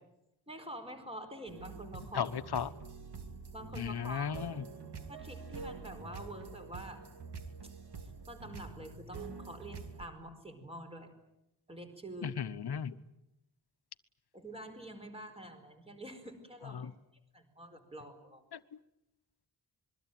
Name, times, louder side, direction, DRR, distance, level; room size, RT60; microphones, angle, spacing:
voice 1, 0.5-2.3 3.5-4.4 5.1-7.0 7.6-7.7 8.0-11.1 11.7-12.4 14.3-16.9 17.3-18.4, right 1 dB, 15° right, 6 dB, 4.7 m, -47 dB
sound 1, 1.5-10.1, right 4 dB, 70° right, 2.8 m, -46 dB
voice 2, 2.1-2.7 3.8-4.6 12.2-12.9 16.7-16.9 18.5-18.6, left 7 dB, 70° left, 12 dB, 1.2 m, -35 dB
27.0 x 22.5 x 9.3 m, 0.86 s
wide cardioid pair, 170°, 41 cm